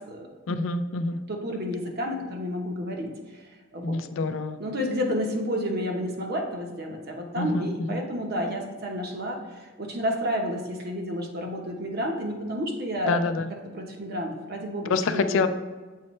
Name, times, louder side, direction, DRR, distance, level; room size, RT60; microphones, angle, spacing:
voice 1, 0.5-1.2 3.8-4.6 7.4-8.0 13.1-13.5 14.9-15.5, left 3 dB, 80° left, 10 dB, 0.4 m, -26 dB
voice 2, 1.3-4.0 4.6-13.2 13.7-15.5, equal, 55° right, 2 dB, 1.0 m, -31 dB
7.5 x 4.3 x 3.1 m, 1.4 s
head